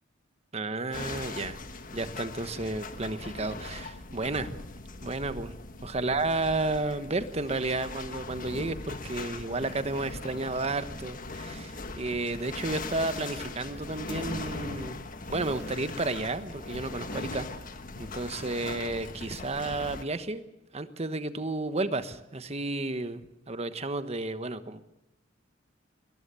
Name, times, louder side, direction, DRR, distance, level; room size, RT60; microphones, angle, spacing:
voice 1, 0.5-1.6 1.9-4.6 5.0-15.0 15.3-17.5 18.0-20.4 20.7-24.9, right 2 dB, 35° right, 11 dB, 1.2 m, -32 dB
sound 1, 0.9-20.0, left 3 dB, 45° left, 1.5 m, -40 dB
21.5 x 19.5 x 6.9 m, 0.89 s
head